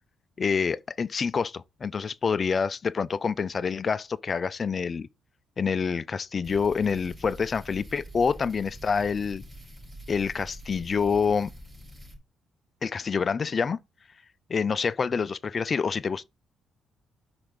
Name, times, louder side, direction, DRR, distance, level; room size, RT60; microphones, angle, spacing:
voice 1, 0.4-5.1 5.6-9.4 10.1-11.5 12.8-13.8 14.5-16.2, left 5 dB, 40° left, 0.4 m, -27 dB
sound 1, 6.4-12.2, equal, 20° right, 4.5 m, -45 dB
5.9 x 4.8 x 5.1 m
cardioid pair, 90°, 0 cm